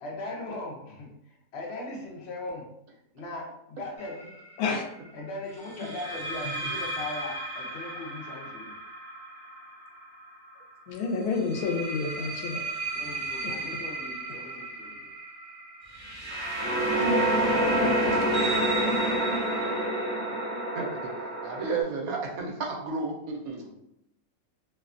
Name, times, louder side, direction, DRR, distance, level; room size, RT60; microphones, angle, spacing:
voice 1, 0.0-2.7 3.1-4.3 5.1-8.8 12.9-15.1, left 2 dB, 60° left, -2 dB, 0.7 m, -39 dB
sound 1, 4.0-4.3 5.8-10.5 11.3-21.8, right 1 dB, 25° left, 0.7 m, -30 dB
voice 2, 10.9-12.6 17.0-17.1 17.8-18.4, left 4 dB, 80° left, 2 dB, 1.1 m, -30 dB
voice 3, 20.7-21.1 21.4-23.7, right 4 dB, 75° right, 0 dB, 1.0 m, -32 dB
2.7 x 2.2 x 2.4 m, 0.79 s
omnidirectional pair, 1.6 m